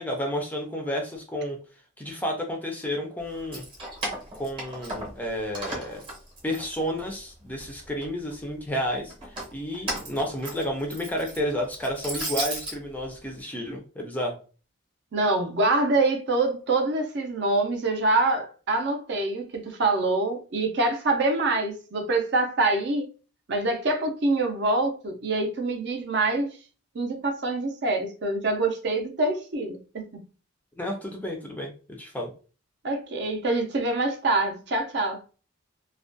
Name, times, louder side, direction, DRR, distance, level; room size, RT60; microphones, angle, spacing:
voice 1, 0.0-1.6 2.0-3.7 4.4-6.0 6.4-14.4 30.8-32.3, equal, 10° left, 0.4 m, -31 dB
Keys jangling, 3.3-5.3 5.5-7.2 7.6-8.3 9.1-12.8, right 1 dB, 25° right, 0.8 m, -35 dB
voice 2, 15.1-23.1 23.5-26.5 26.9-30.2 32.8-35.2, right 2 dB, 55° right, 0.5 m, -25 dB
2.3 x 2.1 x 2.5 m
head